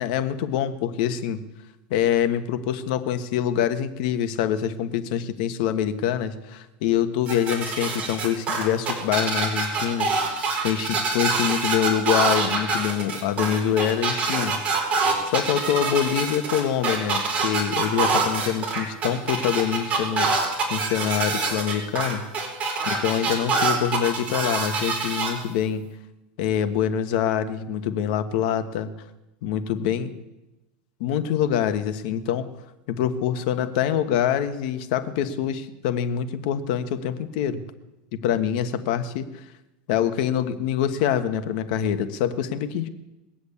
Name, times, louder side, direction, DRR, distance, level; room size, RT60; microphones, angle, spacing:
voice 1, 0.0-1.4 1.9-10.1 10.6-14.6 15.3-22.2 22.8-25.8 26.4-28.9 29.4-30.1 31.0-32.5 32.9-37.6 38.1-39.3 39.9-42.9, left 9 dB, 60° left, 10 dB, 1.4 m, -25 dB
sound 1, 7.3-25.3, right 4 dB, 30° right, 4.3 m, -25 dB
21.5 x 8.0 x 8.4 m, 1.0 s
supercardioid pair, 150°, 5 cm